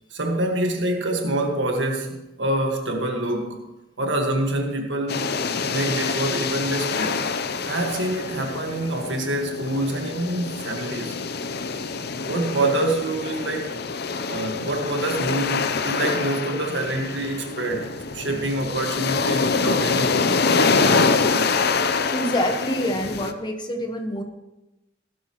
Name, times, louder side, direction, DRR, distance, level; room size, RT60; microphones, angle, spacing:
voice 1, 0.1-3.6 4.0-5.3 5.7-7.1 7.7-11.2 12.2-13.8 14.3-20.3 20.6-21.7, right 1 dB, 85° right, 3 dB, 1.8 m, -26 dB
sound 1, 5.1-23.3, left 4 dB, 60° left, 0.7 m, -25 dB
voice 2, 22.1-24.2, equal, 25° left, 4 dB, 1.3 m, -26 dB
16.0 x 12.5 x 3.1 m, 0.97 s
head